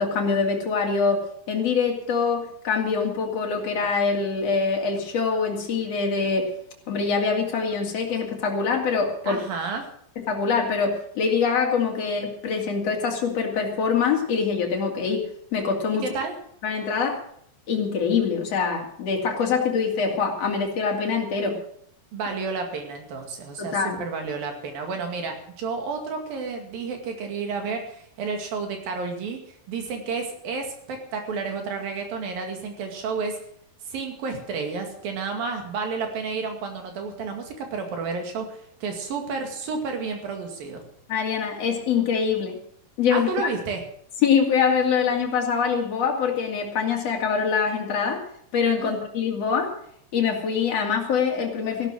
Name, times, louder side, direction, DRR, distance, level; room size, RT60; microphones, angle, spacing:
voice 1, 0.0-6.5 6.9-9.4 10.2-15.3 15.5-16.1 16.6-17.2 17.7-21.6 23.6-24.0 41.1-42.6 43.0-43.5 44.2-48.2 48.5-49.7 50.1-51.9, left 5 dB, 45° left, 1 dB, 3.4 m, -24 dB
voice 2, 9.3-9.9 16.0-16.4 22.1-29.4 29.7-33.4 33.9-40.9 43.1-43.8 48.8-49.0, right 4 dB, 65° right, 4 dB, 4.0 m, -31 dB
15.5 x 12.0 x 6.3 m, 0.67 s
omnidirectional pair, 4.4 m